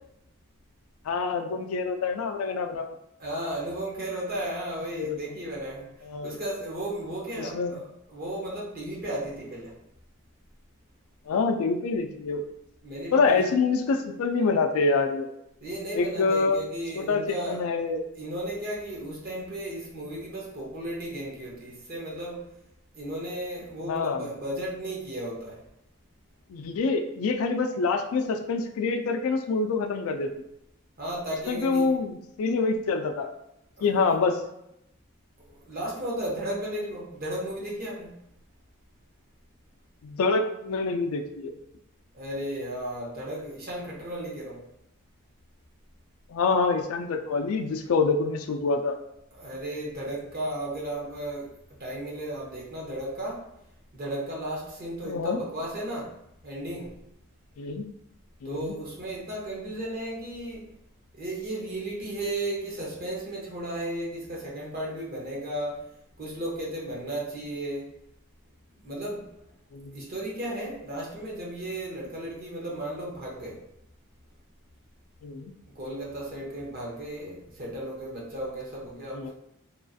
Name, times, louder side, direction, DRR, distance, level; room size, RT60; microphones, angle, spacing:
voice 1, 1.1-2.9 5.0-5.2 6.0-6.4 7.4-7.8 11.3-12.5 13.1-15.3 15.9-16.6 16.9-18.0 23.9-24.3 26.5-30.3 31.5-33.3 33.8-34.4 40.0-41.5 46.3-49.0 55.0-55.4 57.6-57.8 58.4-58.7 69.7-70.0 75.2-75.5 79.1-79.3, left 4 dB, 75° left, 6 dB, 0.3 m, -26 dB
voice 2, 3.2-5.9 6.2-7.8 8.1-9.8 12.8-13.5 15.6-17.6 18.2-22.5 22.9-25.6 31.0-32.0 33.8-34.1 35.5-38.2 42.1-44.6 49.4-51.5 51.8-53.5 53.9-56.2 56.4-56.9 58.4-60.7 61.1-65.9 66.2-67.9 68.7-69.3 69.9-73.6 75.7-79.3, right 1 dB, 45° right, -4 dB, 0.8 m, -34 dB
3.0 x 2.4 x 2.6 m, 0.80 s
head